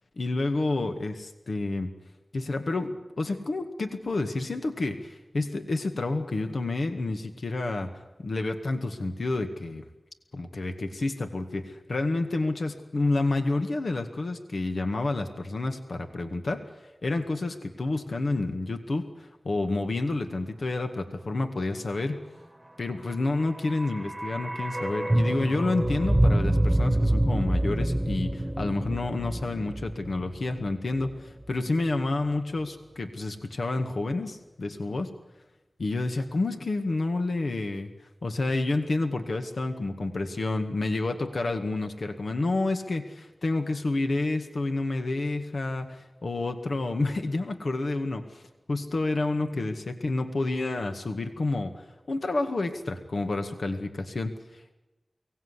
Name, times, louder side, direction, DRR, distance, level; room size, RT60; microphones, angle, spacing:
voice 1, 0.2-1.9 2.3-7.9 8.2-9.8 10.3-16.7 17.0-22.2 22.8-35.1 35.8-37.9 38.2-48.2 48.7-54.7, left 2 dB, 80° left, 6 dB, 2.0 m, -29 dB
sound 1, 23.4-31.5 31.8-31.9, right 1 dB, 20° right, 1.2 m, -27 dB
23.5 x 18.0 x 9.9 m, 1.0 s
cardioid pair, 45°, 0 cm